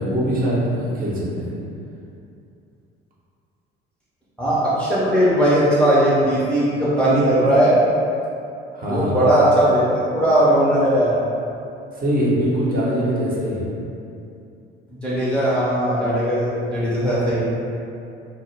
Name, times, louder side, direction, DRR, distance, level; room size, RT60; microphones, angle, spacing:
voice 1, 0.0-1.5 8.7-9.3 11.9-13.7, equal, 30° right, -6 dB, 0.7 m, -22 dB
voice 2, 4.4-7.7 8.9-11.2 15.0-17.4, right 1 dB, 5° left, -10 dB, 0.5 m, -18 dB
2.1 x 2.0 x 3.1 m, 2.6 s
figure-of-eight pair, 55°, 29 cm